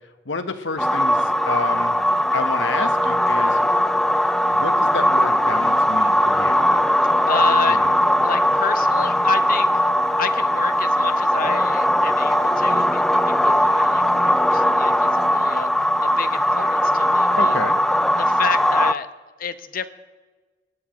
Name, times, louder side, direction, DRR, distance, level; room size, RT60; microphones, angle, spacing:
voice 1, 0.3-2.0 2.3-3.6 4.5-6.6 7.7-7.9 17.4-17.8, left 3 dB, 80° left, 9 dB, 1.0 m, -29 dB
sound 1, 0.8-18.9, equal, 5° left, 0.3 m, -19 dB
voice 2, 7.3-7.8 8.2-9.7 10.2-15.7 16.0-17.6 18.1-19.1 19.4-19.9, left 6 dB, 50° left, 11 dB, 0.7 m, -30 dB
20.5 x 10.5 x 3.0 m, 1.3 s
head